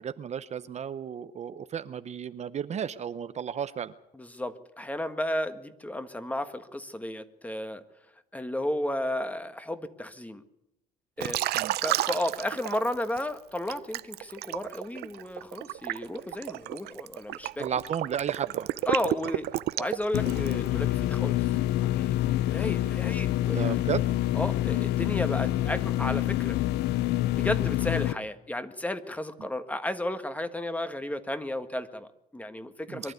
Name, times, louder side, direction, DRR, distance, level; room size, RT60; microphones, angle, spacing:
voice 1, 0.0-3.9 11.5-11.7 17.6-18.7 23.5-24.0 32.9-33.1, right 8 dB, 40° right, 12 dB, 0.8 m, -33 dB
voice 2, 4.1-7.8 8.3-10.4 11.2-11.4 11.8-17.7 18.9-19.5 19.7-22.1 22.4-23.8 24.3-26.6 27.3-33.1, left 1 dB, 10° left, 10 dB, 1.5 m, -33 dB
Liquid, 11.2-13.2 13.7-20.7, right 15 dB, 75° right, 0.7 m, -31 dB
sound 1, 20.1-28.1, left 14 dB, 80° left, 0.7 m, -27 dB
23.5 x 12.0 x 9.4 m, 0.86 s
cardioid pair, 110°, 17 cm